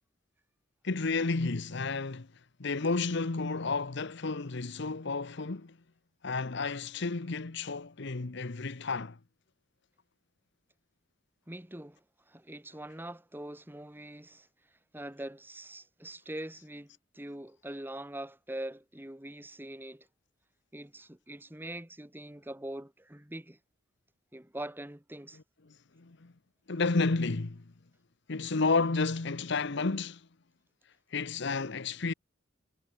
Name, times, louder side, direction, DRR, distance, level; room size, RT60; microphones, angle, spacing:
voice 1, 0.8-2.3 2.6-5.8 6.2-9.2 26.0-26.3 26.7-27.6 28.3-30.2 31.1-32.1, left 3 dB, 60° left, 1.0 m, -31 dB
voice 2, 11.5-14.5 14.9-20.1 20.7-23.6 24.3-25.4, right 1 dB, 10° right, 1.6 m, -43 dB
head